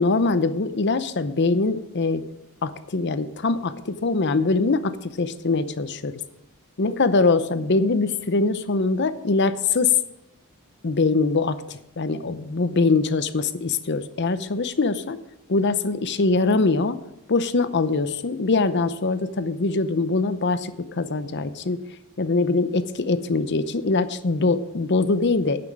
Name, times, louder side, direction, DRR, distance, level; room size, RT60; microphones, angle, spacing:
voice 1, 0.0-2.2 2.6-6.1 6.8-9.9 10.8-15.2 15.5-17.0 17.3-21.8 22.2-25.7, left 3 dB, 50° left, 12 dB, 0.7 m, -23 dB
9.6 x 6.0 x 8.6 m, 0.84 s
head